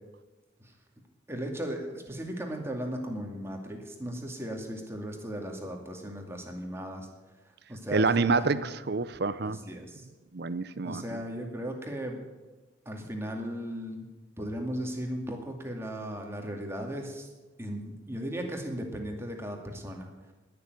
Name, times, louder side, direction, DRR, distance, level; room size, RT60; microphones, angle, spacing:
voice 1, 1.3-7.1 7.7-8.6 9.4-10.0 10.8-12.2 12.9-14.1 14.4-17.3 17.6-20.1, equal, 15° right, 2 dB, 2.3 m, -36 dB
voice 2, 7.9-9.6 10.3-11.2, right 4 dB, 60° right, 15 dB, 0.7 m, -27 dB
20.0 x 7.1 x 9.6 m, 1.2 s
head